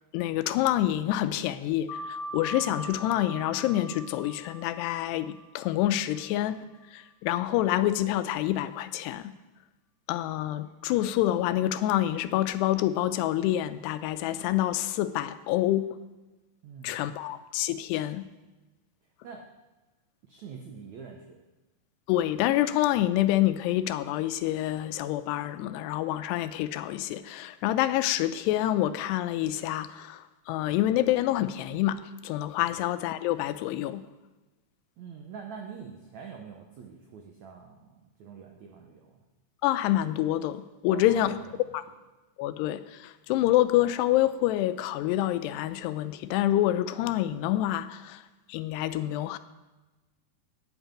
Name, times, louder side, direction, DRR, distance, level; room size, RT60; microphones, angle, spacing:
voice 1, 0.1-6.6 6.9-9.3 10.1-15.9 16.8-18.2 22.1-34.0 39.6-41.3 41.7-41.8 42.4-48.2 48.5-49.4, left 13 dB, 90° left, 12 dB, 2.7 m, -27 dB
sound 1, 1.9-7.1, equal, 65° left, 2.7 m, -41 dB
voice 2, 16.6-17.0 19.2-19.4 20.2-21.4 32.6-32.8 35.0-39.2 40.9-41.7, right 6 dB, 85° right, 2 dB, 1.6 m, -45 dB
8.9 x 8.1 x 8.8 m, 1.1 s
omnidirectional pair, 4.7 m